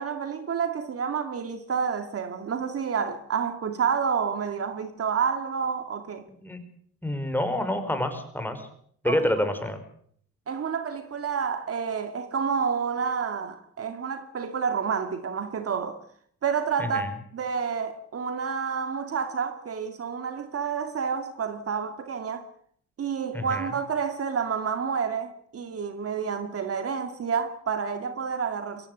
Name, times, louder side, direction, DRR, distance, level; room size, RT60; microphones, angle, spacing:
voice 1, 0.0-6.2 9.0-9.3 10.5-16.0 16.4-17.1 17.3-22.4 23.0-28.9, right 6 dB, 50° right, 2.2 m, -29 dB
voice 2, 7.0-8.6 9.0-9.8 16.8-17.1 23.3-23.7, left 1 dB, 5° left, 5.2 m, -28 dB
23.0 x 17.5 x 8.1 m
cardioid pair, 90°, 30 cm